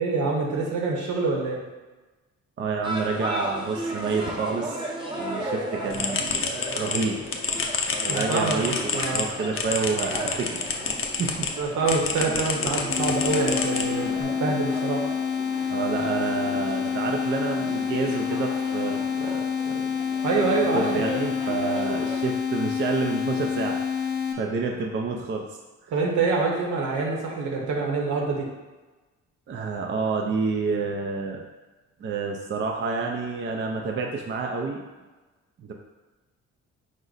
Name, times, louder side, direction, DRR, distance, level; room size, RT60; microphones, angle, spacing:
voice 1, 0.0-1.6 8.1-9.2 11.6-15.0 20.2-21.0 25.9-28.5, right 3 dB, 75° right, -1 dB, 1.0 m, -26 dB
voice 2, 2.6-4.8 5.2-7.2 8.0-11.3 15.7-19.9 20.4-23.8 24.4-25.4 29.5-31.4 32.0-34.8 35.6-35.7, right 4 dB, 40° right, 1 dB, 0.4 m, -29 dB
sound 1, 2.8-22.2, right 1 dB, 15° right, 0.8 m, -36 dB
sound 2, 5.9-11.5 11.9-14.2, left 5 dB, 45° left, 0.5 m, -29 dB
sound 3, 12.9-24.3, left 7 dB, 85° left, 0.6 m, -28 dB
4.9 x 2.1 x 3.9 m, 1.2 s
cardioid pair, 90°, 30 cm